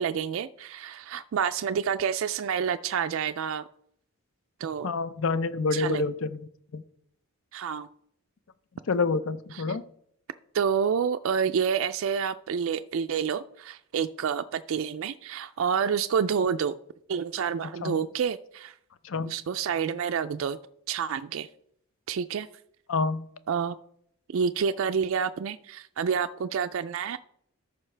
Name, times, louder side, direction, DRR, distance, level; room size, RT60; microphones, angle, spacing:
voice 1, 0.0-3.6 4.6-4.9 5.7-6.1 7.5-7.9 9.5-9.8 10.5-16.7 17.1-18.7 19.3-20.6 20.9-21.5 22.1-22.5 23.5-23.8 24.3-27.2, right 7 dB, 60° right, 9 dB, 0.3 m, -28 dB
voice 2, 4.8-6.4 6.7-6.8 8.9-9.8 17.8-18.0 19.0-19.3 22.9-23.2, left 4 dB, 60° left, 15 dB, 0.5 m, -27 dB
13.5 x 5.7 x 3.3 m, 0.69 s
head